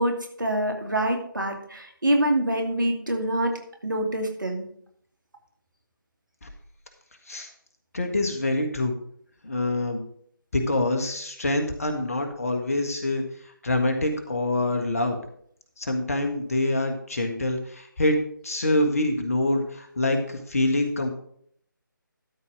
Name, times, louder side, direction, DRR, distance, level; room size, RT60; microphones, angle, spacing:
voice 1, 0.0-3.5 3.8-4.7, right 1 dB, 65° right, 3 dB, 2.5 m, -25 dB
voice 2, 7.9-9.0 9.4-10.0 10.5-15.2 15.8-18.2 18.4-21.1, left 2 dB, 45° left, 5 dB, 1.5 m, -25 dB
12.5 x 4.6 x 6.1 m, 0.66 s
figure-of-eight pair, 155°, 11 cm